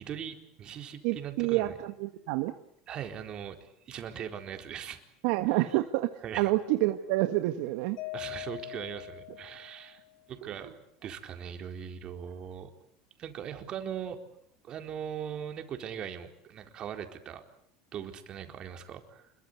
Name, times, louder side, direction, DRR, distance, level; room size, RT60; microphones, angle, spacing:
voice 1, 0.0-1.8 2.9-5.0 5.5-5.6 6.2-6.5 8.1-10.0 10.3-12.7 13.2-14.2 14.6-17.4 17.9-19.3, right 8 dB, 45° right, 6 dB, 4.2 m, -40 dB
voice 2, 1.0-2.5 5.2-8.0 10.4-10.5, right 17 dB, 70° right, 8 dB, 1.5 m, -28 dB
Mallet percussion, 8.0-10.2, left 20 dB, 65° left, 1.7 m, -42 dB
28.0 x 23.0 x 8.2 m, 0.68 s
supercardioid pair, 100°, 2 cm